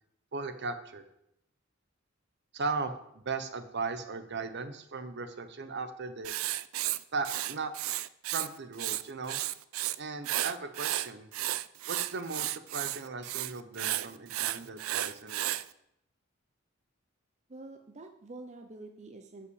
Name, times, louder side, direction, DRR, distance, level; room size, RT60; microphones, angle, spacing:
voice 1, 0.3-1.0 2.5-6.3 7.1-7.7 8.3-9.4 10.0-11.3 11.9-15.6, right 4 dB, 55° right, 9 dB, 0.9 m, -37 dB
Writing, 6.2-8.5 8.7-10.0 10.2-15.6, right 15 dB, 80° right, 0.4 m, -33 dB
voice 2, 17.5-19.5, right 2 dB, 35° right, 5 dB, 0.7 m, -47 dB
10.5 x 5.7 x 6.4 m, 0.79 s
head